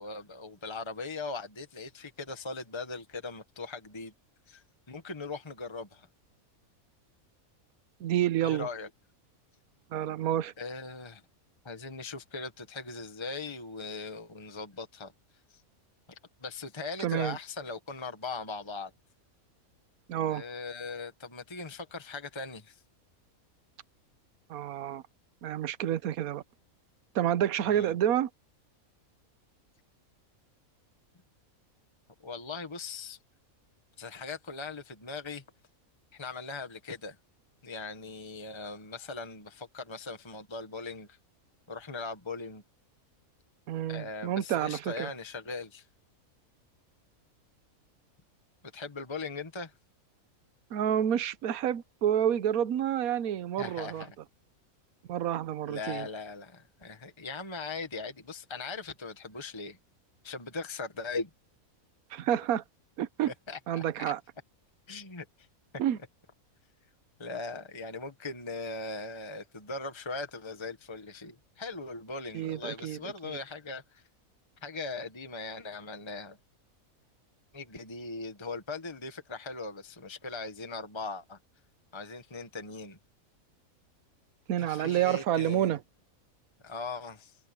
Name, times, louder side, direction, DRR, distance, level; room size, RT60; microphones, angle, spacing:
voice 1, 0.0-4.1 4.5-6.1 8.4-8.9 10.6-11.2 11.6-15.1 15.5-15.6 16.1-18.9 20.3-22.8 27.7-27.9 32.2-33.2 34.0-35.4 36.1-37.2 37.6-41.2 41.7-42.6 43.9-45.8 48.7-49.7 53.6-54.2 55.7-59.8 60.2-61.3 63.5-63.8 64.9-65.2 67.2-74.0 74.6-76.4 77.5-81.4 81.9-83.0 84.6-85.8 86.6-87.4, left 3 dB, 20° left, 1.5 m, -39 dB
voice 2, 8.0-8.7 9.9-10.5 17.0-17.4 20.1-20.4 24.5-25.0 25.4-26.4 27.1-28.3 43.7-45.1 50.7-54.0 55.1-56.1 62.1-62.6 63.0-63.3 63.7-64.2 65.8-66.0 72.3-73.0 73.2-73.4 84.5-85.8, right 10 dB, 80° right, 1.3 m, -29 dB
omnidirectional pair, 1.5 m